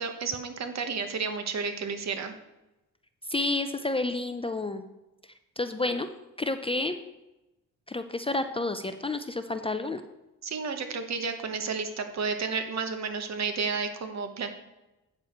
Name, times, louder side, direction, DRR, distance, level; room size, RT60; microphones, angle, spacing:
voice 1, 0.0-2.3 10.4-14.5, right 5 dB, 55° right, 7 dB, 1.1 m, -31 dB
voice 2, 3.3-4.8 5.6-6.1 6.4-7.0 7.9-10.0, left 2 dB, 15° left, 8 dB, 0.4 m, -30 dB
8.6 x 6.8 x 4.4 m, 0.98 s
cardioid pair, 115°, 33 cm